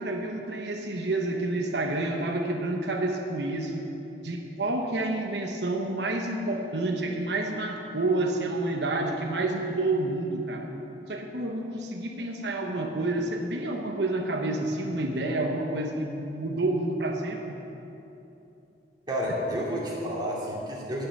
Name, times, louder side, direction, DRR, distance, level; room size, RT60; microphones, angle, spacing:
voice 1, 0.0-3.9 4.2-10.7 11.1-17.6, right 2 dB, 70° right, 2 dB, 1.0 m, -29 dB
voice 2, 19.1-21.1, equal, 25° right, -5 dB, 2.5 m, -30 dB
16.5 x 5.8 x 6.7 m, 2.9 s
head